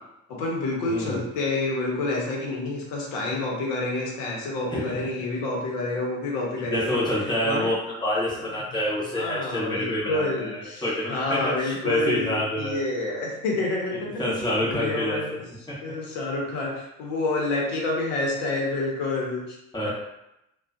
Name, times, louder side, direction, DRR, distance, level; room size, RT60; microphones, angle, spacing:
voice 1, 0.3-7.7 8.4-8.5 9.1-15.3 15.8-19.6 19.8-19.9, left 2 dB, 60° left, -2 dB, 0.8 m, -28 dB
voice 2, 0.9-1.2 4.7-4.8 6.7-7.8 8.0-12.8 14.2-15.2 15.7-15.8 19.7-19.9, left 1 dB, 10° left, -7 dB, 1.0 m, -27 dB
2.3 x 2.2 x 2.5 m, 0.86 s
figure-of-eight pair, 55°, 39 cm